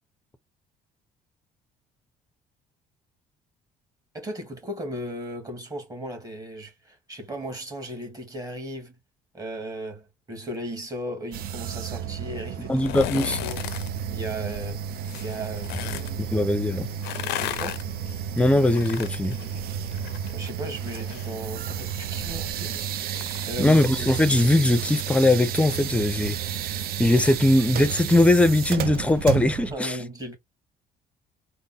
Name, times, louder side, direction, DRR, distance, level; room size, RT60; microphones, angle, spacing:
voice 1, 4.1-9.0 9.3-12.8 13.3-13.7 14.1-14.8 15.2-16.2 17.4-17.8 20.3-22.9 23.5-23.8 29.7-30.3, right 1 dB, 20° right, 1.8 m, -36 dB
sound 1, 11.3-29.7, right 8 dB, 65° right, 0.5 m, -32 dB
sound 2, 12.7-13.9 15.0-16.1 16.9-20.3 20.6-24.0 24.4-24.5, left 13 dB, 85° left, 0.5 m, -35 dB
voice 2, 12.7-13.4 16.2-16.9 18.4-19.3 23.6-26.4 26.6-30.0, left 1 dB, 5° left, 0.5 m, -20 dB
3.6 x 2.1 x 4.0 m
cardioid pair, 110°, 17 cm